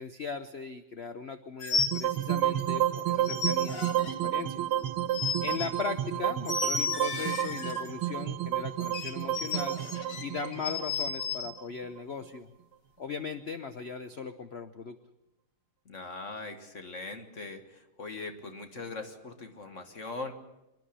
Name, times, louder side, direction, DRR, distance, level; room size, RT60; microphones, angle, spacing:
voice 1, 0.0-4.6 5.4-9.8 10.2-12.5 13.0-15.0, left 5 dB, 70° left, 9 dB, 0.6 m, -38 dB
sound 1, 1.6-2.7 3.0-4.1 4.9-5.7 6.5-7.9 8.8-11.5, left 4 dB, 85° left, 2.6 m, -33 dB
sound 2, 1.8-12.0, right 12 dB, 85° right, 1.8 m, -31 dB
voice 2, 15.9-20.3, left 3 dB, 40° left, 7 dB, 1.7 m, -41 dB
25.5 x 10.5 x 10.0 m, 0.95 s
omnidirectional pair, 2.3 m